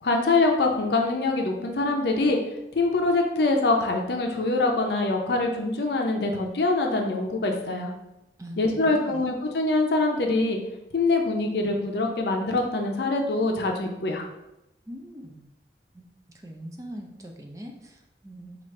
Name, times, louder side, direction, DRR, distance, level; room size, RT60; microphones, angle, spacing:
voice 1, 0.0-2.4 2.7-7.9 8.6-10.6 10.9-14.3, left 2 dB, 70° left, 2 dB, 0.6 m, -24 dB
voice 2, 8.4-9.2 14.9-15.4 15.9-16.0 16.4-18.6, equal, 20° right, 1 dB, 0.4 m, -41 dB
4.8 x 2.5 x 3.2 m, 0.89 s
head